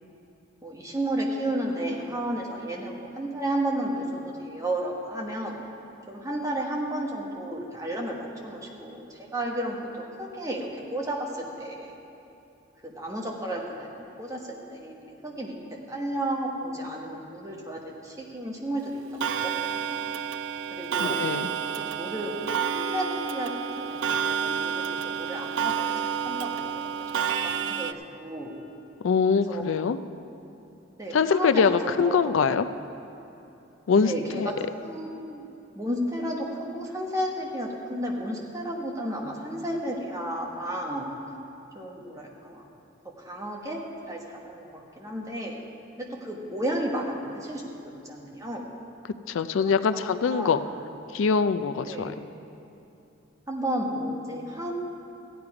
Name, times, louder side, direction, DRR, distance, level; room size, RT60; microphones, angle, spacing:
voice 1, 0.6-5.6 6.1-8.2 8.4-11.9 12.8-14.4 14.7-15.5 15.9-19.0 19.4-20.0 20.7-21.2 21.7-22.3 22.7-23.5 23.8-26.7 27.4-28.6 29.5-29.7 31.0-32.3 34.0-34.5 34.8-35.5 35.7-41.1 41.7-42.6 43.2-43.8 44.1-45.5 46.0-48.6 49.6-50.6 51.9-52.2 53.5-54.7, right 1 dB, 15° right, -2 dB, 1.2 m, -32 dB
Clock, 19.2-27.9, right 7 dB, 70° right, 0.4 m, -29 dB
voice 2, 21.0-21.5 29.0-30.0 31.1-32.7 33.9-34.5 49.3-50.6 51.1-52.1, left 5 dB, 75° left, 12 dB, 0.4 m, -23 dB
14.5 x 9.4 x 4.8 m, 2.9 s
head